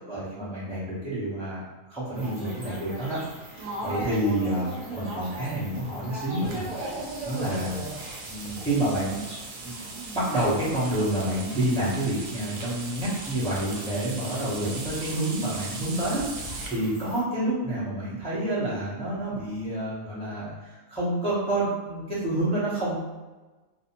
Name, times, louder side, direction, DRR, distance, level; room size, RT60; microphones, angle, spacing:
voice 1, 0.0-1.6 1.9-3.2 3.4-6.6 7.2-7.8 8.3-9.2 9.6-9.8 10.1-23.0, right 1 dB, 5° left, -10 dB, 0.6 m, -28 dB
sound 1, 2.1-17.2, right 1 dB, 45° right, 0.9 m, -39 dB
sound 2, 6.4-16.7, right 3 dB, 75° right, 0.9 m, -39 dB
2.5 x 2.0 x 2.9 m, 1.2 s
omnidirectional pair, 1.4 m